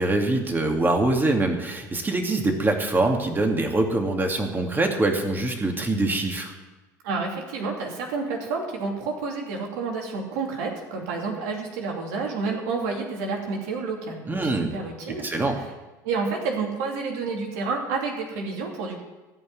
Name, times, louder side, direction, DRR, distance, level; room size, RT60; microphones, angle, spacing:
voice 1, 0.0-6.5 14.3-14.7 15.2-15.6, right 2 dB, 20° right, 3 dB, 2.6 m, -24 dB
voice 2, 7.0-15.2 16.0-19.0, right 4 dB, 75° right, 1 dB, 2.9 m, -29 dB
14.5 x 5.6 x 9.6 m, 1.1 s
hypercardioid pair, 80°, 9 cm